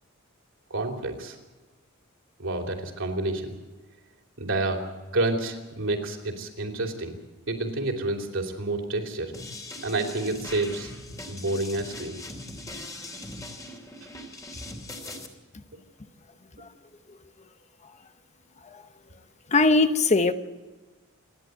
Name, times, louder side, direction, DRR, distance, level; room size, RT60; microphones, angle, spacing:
voice 1, 0.7-1.4 2.4-3.5 4.4-4.8 5.1-7.2 7.5-9.3 9.8-10.9 11.2-12.2 15.1-15.2, right 2 dB, 65° right, 3.2 m, -29 dB
sound 1, 9.3-15.3, left 2 dB, 15° left, 2.9 m, -40 dB
voice 2, 19.5-20.3, left 3 dB, 35° left, 0.9 m, -19 dB
27.5 x 11.0 x 9.1 m
head